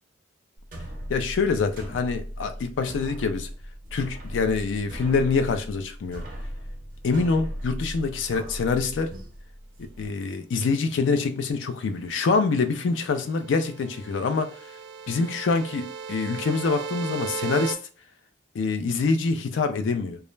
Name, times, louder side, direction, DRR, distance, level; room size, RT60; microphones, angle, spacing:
sound 1, 0.6-10.1, equal, 45° right, 0.6 m, -37 dB
voice 1, 1.1-3.5 3.9-6.2 7.0-9.1 10.0-14.6 15.1-17.8 18.5-20.2, left 4 dB, 80° left, 0.4 m, -25 dB
sound 2, 12.8-17.7, right 6 dB, 90° right, 0.4 m, -37 dB
2.3 x 2.0 x 3.1 m
head